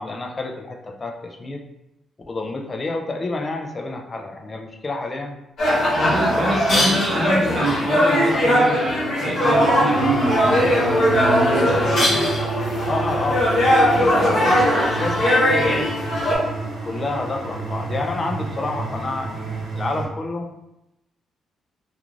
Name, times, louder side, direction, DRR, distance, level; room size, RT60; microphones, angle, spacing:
voice 1, 0.0-1.6 2.3-5.3 6.0-7.9 12.9-13.5 13.9-15.9 16.8-20.5, left 2 dB, 25° left, 2 dB, 0.3 m, -29 dB
sound 1, 5.6-16.4, equal, 60° left, 1.0 m, -19 dB
voice 2, 6.0-12.3, right 1 dB, 35° right, -2 dB, 0.6 m, -25 dB
sound 2, 9.5-20.1, right 2 dB, 90° right, 0.7 m, -29 dB
2.4 x 2.4 x 3.0 m, 0.90 s
cardioid pair, 150°, 0 cm